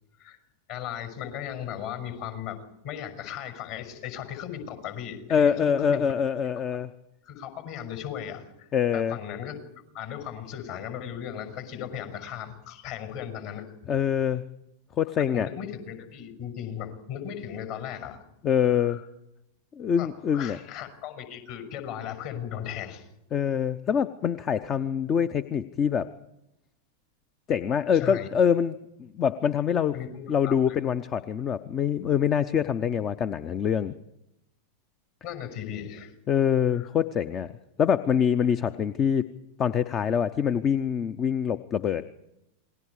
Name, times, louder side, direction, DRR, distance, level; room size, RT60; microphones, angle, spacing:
voice 1, 0.7-6.1 7.2-9.6 9.9-13.9 15.2-18.3 18.8-19.0 20.0-23.1 28.0-28.3 29.9-30.8 35.2-36.1 36.7-36.9, left 9 dB, 50° left, 7 dB, 5.9 m, -37 dB
voice 2, 5.3-6.9 8.7-9.2 13.9-14.4 15.0-15.5 18.4-19.0 19.8-20.6 23.3-26.1 27.5-28.7 29.0-29.9 30.3-33.9 36.3-37.5 37.8-39.2 39.6-42.0, left 8 dB, 30° left, 14 dB, 0.7 m, -25 dB
28.0 x 20.5 x 4.9 m, 0.85 s
figure-of-eight pair, 90°, 0 cm